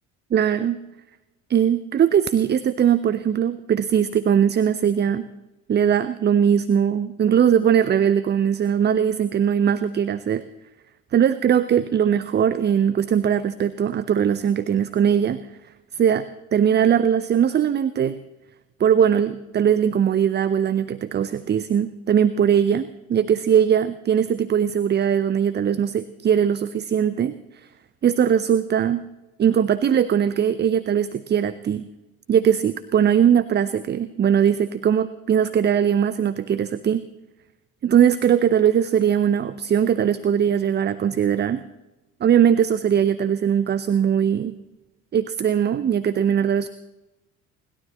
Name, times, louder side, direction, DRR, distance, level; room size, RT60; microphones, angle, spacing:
voice 1, 0.3-0.8 1.5-5.3 5.7-10.4 11.1-15.4 15.9-18.2 18.8-27.4 28.0-29.0 29.4-31.9 32.3-37.0 37.8-41.6 42.2-44.6 45.1-46.7, right 8 dB, 25° right, 15 dB, 0.6 m, -20 dB
29.0 x 12.5 x 3.0 m, 1.1 s
figure-of-eight pair, 55°, 43 cm